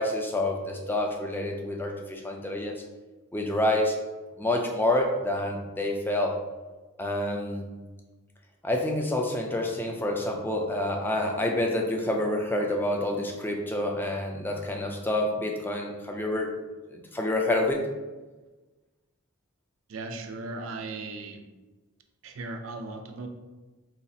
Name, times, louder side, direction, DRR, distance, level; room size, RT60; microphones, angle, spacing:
voice 1, 0.0-2.7 3.3-4.0 4.4-6.4 7.0-7.7 8.6-16.5 16.9-17.8, left 1 dB, 10° left, 1 dB, 0.3 m, -28 dB
voice 2, 19.9-21.4 22.2-23.3, right 3 dB, 65° right, 5 dB, 0.4 m, -37 dB
4.0 x 2.4 x 2.7 m, 1.2 s
head